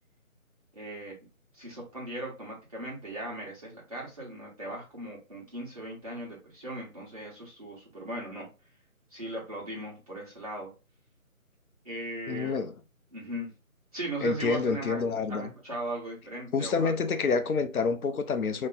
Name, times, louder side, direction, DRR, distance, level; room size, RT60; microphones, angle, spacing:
voice 1, 0.7-1.1 1.5-8.5 9.1-10.7 11.8-12.6 13.1-13.5 13.9-17.0, right 1 dB, 25° right, 1.1 m, -38 dB
voice 2, 12.3-12.7 14.2-15.5 16.5-18.7, left 5 dB, 80° left, 0.7 m, -28 dB
2.9 x 2.1 x 3.7 m
figure-of-eight pair, 165°, 42 cm